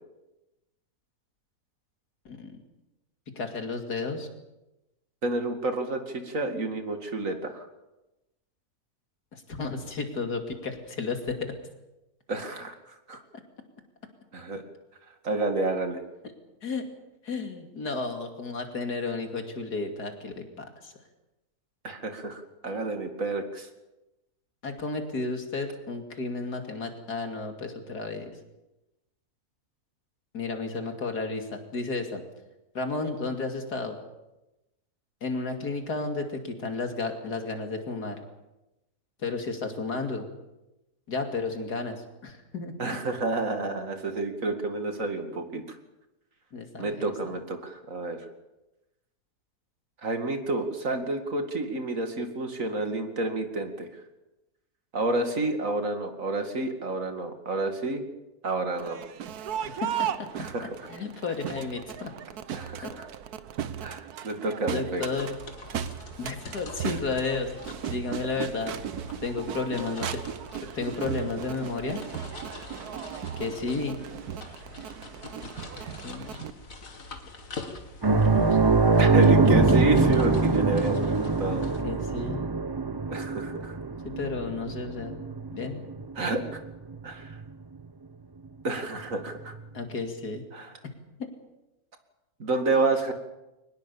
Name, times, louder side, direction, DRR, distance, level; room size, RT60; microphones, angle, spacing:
voice 1, 2.2-2.6 3.3-4.3 9.3-11.5 16.6-16.8 17.2-20.9 24.6-28.3 30.3-32.2 32.7-34.0 35.2-38.2 39.2-40.3 41.1-43.0 46.5-47.0 59.6-60.1 60.9-62.1 62.8-62.9 64.7-65.3 66.2-67.5 67.9-68.7 69.2-70.2 70.7-72.0 73.4-74.0 76.0-76.3 78.3-78.7 81.8-82.4 84.2-85.2 85.5-85.8 89.7-90.4 91.2-91.3, left 3 dB, 85° left, 5 dB, 3.2 m, -32 dB
voice 2, 5.2-7.7 12.3-13.2 14.3-14.6 15.2-16.0 21.8-23.7 42.8-45.8 46.8-48.3 50.0-53.9 54.9-58.0 58.4-59.1 60.3-60.9 62.5-63.1 63.8-65.0 79.0-81.6 83.1-83.8 86.2-86.6 87.0-87.4 88.6-89.5 90.5-90.7 92.4-93.1, right 2 dB, 55° right, 6 dB, 2.6 m, -29 dB
Crowd, 58.7-76.5, right 9 dB, 75° right, 1.4 m, -37 dB
sound 1, 65.2-81.8, left 3 dB, 60° left, 2.5 m, -45 dB
sound 2, 78.0-87.0 87.3-87.5 89.5-89.6, right 3 dB, 25° right, 0.5 m, -23 dB
23.0 x 20.0 x 7.1 m, 0.98 s
omnidirectional pair, 1.6 m